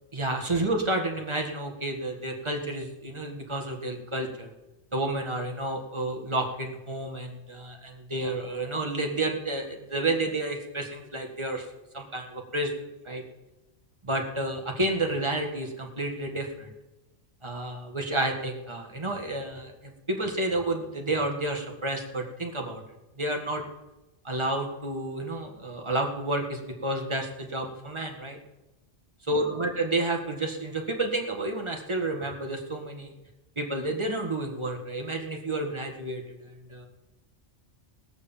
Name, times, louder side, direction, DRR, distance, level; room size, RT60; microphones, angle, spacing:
voice 1, 0.1-4.5 4.9-11.7 11.9-12.7 13.1-13.2 14.0-16.7 17.4-22.8 23.2-23.6 24.2-28.4 29.3-33.1 33.6-36.9, right 2 dB, 25° right, 2 dB, 1.8 m, -30 dB
19.5 x 6.5 x 7.3 m, 1.0 s
omnidirectional pair, 1.2 m